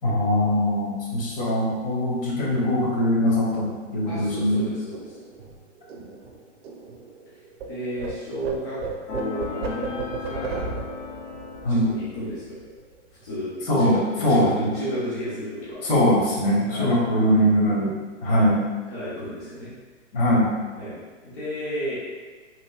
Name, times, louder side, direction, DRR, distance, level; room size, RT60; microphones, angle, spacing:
voice 1, 0.0-4.6 5.9-6.0 11.6-11.9 13.7-14.7 15.8-18.6 20.1-20.5, equal, 50° left, -5 dB, 1.0 m, -22 dB
voice 2, 4.1-5.2 7.3-8.8 9.1-10.7 11.6-12.6 13.2-15.8 16.7-17.0 18.3-18.5 18.9-19.7 20.8-21.9, equal, 20° left, -10 dB, 0.4 m, -33 dB
sound 1, 4.3-7.7 8.0-12.9 13.2-13.5 13.7-14.3, right 5 dB, 55° right, 0.5 m, -36 dB
sound 2, 9.1-11.9, left 6 dB, 80° left, 0.6 m, -36 dB
3.0 x 2.5 x 2.3 m, 1.4 s
hypercardioid pair, 130°, 37 cm